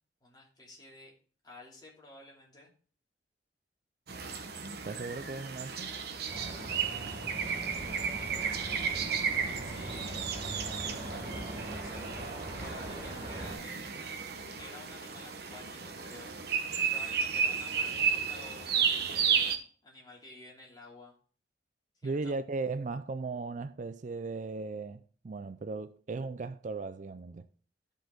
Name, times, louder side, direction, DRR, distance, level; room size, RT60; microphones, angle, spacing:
voice 1, 0.2-1.1 1.4-2.7 8.1-10.2 10.9-12.3 12.6-14.1 14.4-16.3 16.9-19.6 19.8-21.2 21.9-22.4, left 2 dB, 25° left, 2.8 m, -52 dB
sound 1, 4.1-19.6, right 6 dB, 60° right, 1.0 m, -33 dB
voice 2, 4.8-5.9 22.0-27.5, right 3 dB, 45° right, 0.4 m, -37 dB
sound 2, 6.3-13.6, right 1 dB, 15° right, 4.2 m, -41 dB
13.0 x 5.2 x 3.8 m
head